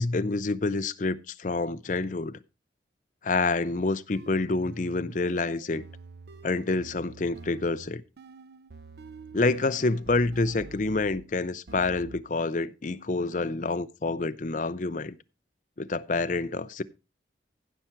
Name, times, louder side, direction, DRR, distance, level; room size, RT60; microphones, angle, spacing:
voice 1, 0.0-2.4 3.2-5.8 6.4-8.0 9.3-15.2 15.8-16.8, left 3 dB, 45° left, 0.5 m, -28 dB
sound 1, 3.7-11.3 11.7-12.4, right 3 dB, 60° right, 0.6 m, -47 dB
16.0 x 5.8 x 4.5 m
head